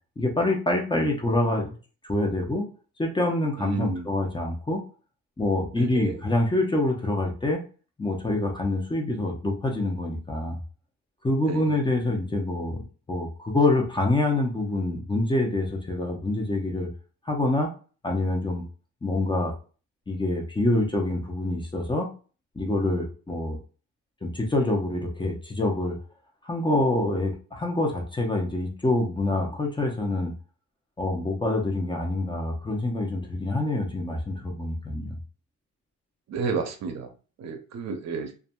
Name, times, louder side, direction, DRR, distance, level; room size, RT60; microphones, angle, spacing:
voice 1, 0.2-1.8 2.1-2.7 3.0-4.8 5.4-7.6 8.0-10.6 11.2-16.9 17.3-17.7 18.0-18.6 19.0-19.5 20.1-22.1 22.6-23.6 24.2-26.0 26.4-30.3 31.0-35.2, left 2 dB, 15° left, 0 dB, 0.8 m, -26 dB
voice 2, 3.6-4.1 5.8-6.2 11.5-11.8 36.3-37.1 37.4-38.3, right 5 dB, 60° right, 6 dB, 0.6 m, -31 dB
2.6 x 2.5 x 2.2 m, 0.36 s
cardioid pair, 90°, 30 cm